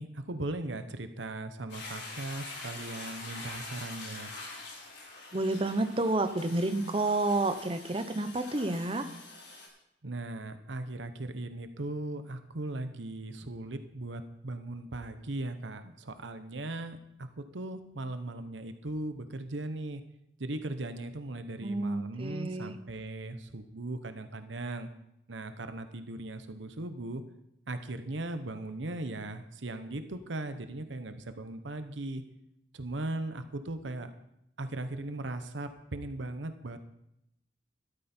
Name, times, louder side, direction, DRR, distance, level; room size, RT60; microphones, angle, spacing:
voice 1, 0.0-4.3 10.0-20.0 20.4-24.9 25.3-27.2 27.7-32.2 32.7-34.1 34.6-36.8, right 2 dB, 85° right, 9 dB, 1.0 m, -38 dB
Toilet flush, 1.7-9.7, left 3 dB, 70° left, 5.0 m, -45 dB
voice 2, 5.3-9.1 21.6-22.8, right 2 dB, 30° right, 9 dB, 0.9 m, -30 dB
13.0 x 13.0 x 4.4 m, 0.82 s
head